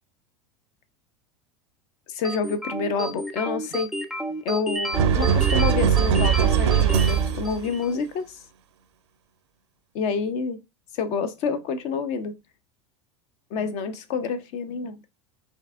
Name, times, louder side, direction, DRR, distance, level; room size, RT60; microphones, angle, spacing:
voice 1, 2.1-3.9 4.4-8.4 9.9-10.6 10.9-12.4 13.5-15.0, left 5 dB, 50° left, 0.7 m, -28 dB
sound 1, 2.2-8.0, right 1 dB, ahead, 0.4 m, -31 dB
sound 2, 4.9-7.7, right 8 dB, 70° right, 0.5 m, -20 dB
4.5 x 2.7 x 3.5 m
figure-of-eight pair, 80°, 15 cm